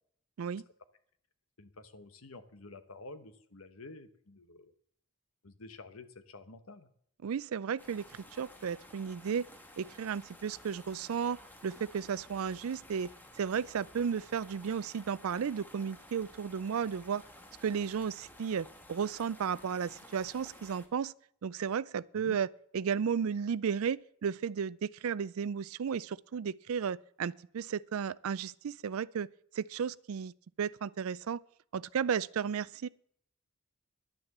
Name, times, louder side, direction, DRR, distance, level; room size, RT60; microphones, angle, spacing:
voice 1, 1.6-4.7 5.4-6.9 22.2-22.4, left 2 dB, 75° left, 1.1 m, -50 dB
voice 2, 7.2-8.1 8.4-9.5 9.8-13.1 13.4-17.2 17.6-21.1 21.4-22.5 22.7-29.3 29.5-30.3 30.6-31.4 31.7-32.9, right 7 dB, 75° right, 0.4 m, -34 dB
sound 1, 7.8-20.9, left 1 dB, 10° left, 1.3 m, -54 dB
10.5 x 9.6 x 7.2 m
head